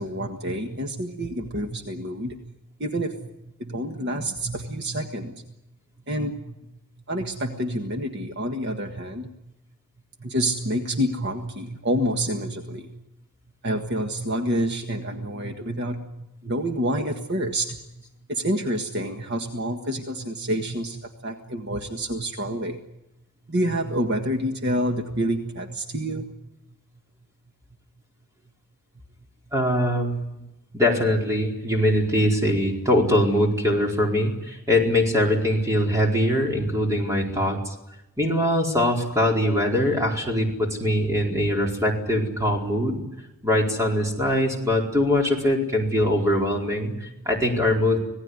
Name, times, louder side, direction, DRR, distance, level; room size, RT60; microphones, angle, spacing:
voice 1, 0.0-2.5 2.8-3.3 3.6-5.3 6.1-6.5 7.1-9.3 10.2-13.0 13.6-17.8 18.3-22.8 23.5-26.3, right 1 dB, 50° right, 4 dB, 1.6 m, -28 dB
voice 2, 29.5-30.5 30.7-37.6 38.2-43.0 43.4-48.0, left 1 dB, 15° right, 0 dB, 4.6 m, -22 dB
26.0 x 18.0 x 9.7 m, 0.95 s
head